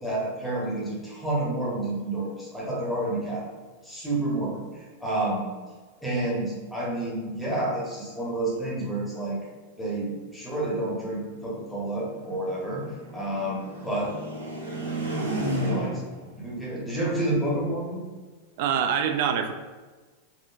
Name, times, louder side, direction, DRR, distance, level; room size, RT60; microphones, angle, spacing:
voice 1, 0.0-3.4 3.8-5.5 6.0-9.4 9.8-14.2 15.1-16.0 16.3-18.0, right 1 dB, 5° left, -7 dB, 1.3 m, -29 dB
sound 1, 10.9-16.2, right 1 dB, 75° right, 0.9 m, -33 dB
voice 2, 18.6-19.5, right 8 dB, 50° right, 7 dB, 0.3 m, -24 dB
4.0 x 2.9 x 2.6 m, 1.3 s
figure-of-eight pair, 90°, 0 cm